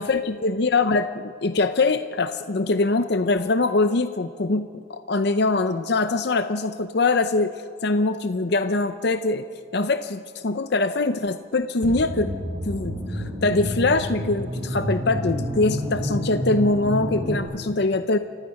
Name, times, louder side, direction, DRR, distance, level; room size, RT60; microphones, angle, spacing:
voice 1, 0.0-7.5 7.8-9.5 9.7-12.3 12.7-18.2, left 3 dB, 55° left, 10 dB, 0.6 m, -23 dB
sound 1, 11.8-17.4, equal, 25° right, 5.2 m, -29 dB
28.0 x 15.5 x 5.9 m, 2.1 s
head